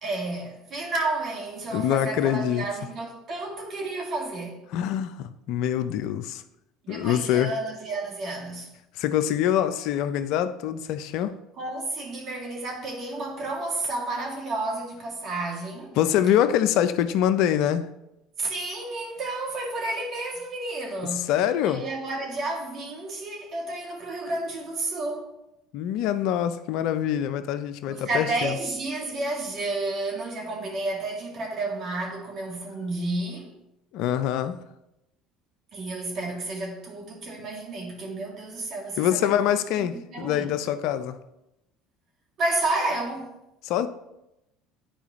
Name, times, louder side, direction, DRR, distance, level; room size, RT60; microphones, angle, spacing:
voice 1, 0.0-4.6 6.8-8.7 11.6-16.0 18.4-21.3 21.6-25.3 27.9-33.5 35.7-39.5 39.8-40.5 42.4-43.3, right 2 dB, 50° right, 2.4 m, -31 dB
voice 2, 1.7-2.7 4.7-6.4 6.9-7.5 9.0-11.4 16.0-17.9 21.1-21.8 25.7-28.6 33.9-34.6 39.0-41.2 43.6-43.9, left 10 dB, 65° left, 0.5 m, -25 dB
10.0 x 4.7 x 3.1 m
hypercardioid pair, 70°, 0 cm